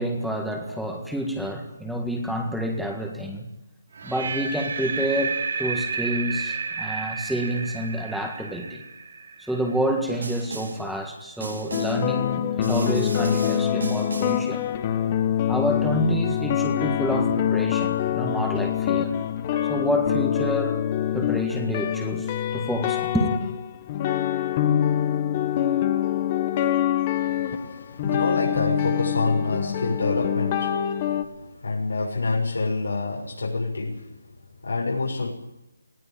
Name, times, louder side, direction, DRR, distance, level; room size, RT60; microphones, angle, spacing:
voice 1, 0.0-3.5 4.0-8.8 9.4-14.7 15.5-19.1 19.7-20.8 21.1-23.3, equal, ahead, 2 dB, 1.8 m, -28 dB
sound 1, 4.0-10.0, right 5 dB, 55° right, 2.7 m, -31 dB
Snare drum, 10.2-10.9 11.4-12.1 12.6-14.5, right 3 dB, 85° right, 5.3 m, -35 dB
sound 2, 11.7-31.2, left 10 dB, 25° left, 1.3 m, -25 dB
voice 2, 27.1-30.8 31.6-34.0 34.6-35.3, left 3 dB, 85° left, -2 dB, 6.8 m, -27 dB
20.0 x 17.0 x 8.7 m, 0.90 s
hypercardioid pair, 165°, 0 cm